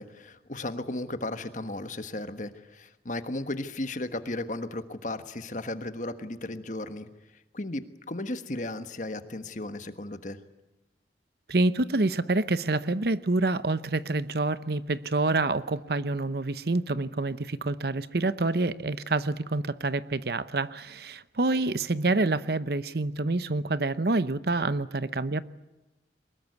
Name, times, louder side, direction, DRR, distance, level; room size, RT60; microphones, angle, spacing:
voice 1, 0.0-7.1 7.5-10.4, left 2 dB, 45° left, 10 dB, 1.4 m, -35 dB
voice 2, 11.5-25.4, right 2 dB, 60° right, 15 dB, 0.8 m, -27 dB
23.5 x 20.5 x 9.5 m, 1.0 s
head